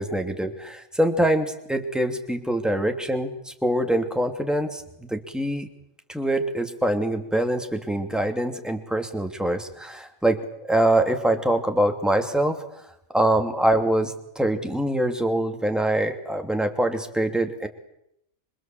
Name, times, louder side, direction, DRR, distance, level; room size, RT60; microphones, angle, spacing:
voice 1, 0.0-5.7 6.1-12.6 13.1-17.7, right 1 dB, ahead, 5 dB, 2.7 m, -24 dB
26.5 x 26.0 x 7.8 m, 0.78 s
omnidirectional pair, 1.4 m